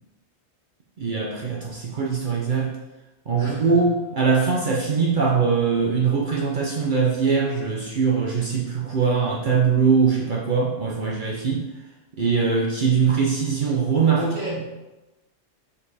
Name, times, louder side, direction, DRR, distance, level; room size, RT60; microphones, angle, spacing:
voice 1, 1.0-2.8 3.3-11.7 12.2-14.6, right 5 dB, 50° right, -2 dB, 0.9 m, -22 dB
voice 2, 3.4-3.7 14.2-14.6, left 1 dB, 75° right, -7 dB, 2.7 m, -31 dB
5.5 x 5.1 x 4.1 m, 1.0 s
omnidirectional pair, 1.1 m